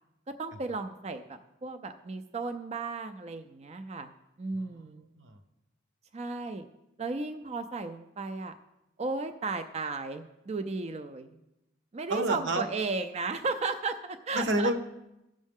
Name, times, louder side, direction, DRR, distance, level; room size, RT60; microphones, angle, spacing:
voice 1, 0.4-4.1 4.4-5.0 6.1-6.7 7.0-8.6 9.0-11.4 11.9-14.7, right 3 dB, 35° right, 7 dB, 0.4 m, -34 dB
voice 2, 4.6-5.4 12.1-12.6 14.3-14.8, right 1 dB, 80° right, 8 dB, 0.9 m, -30 dB
16.0 x 6.3 x 3.6 m, 0.92 s
head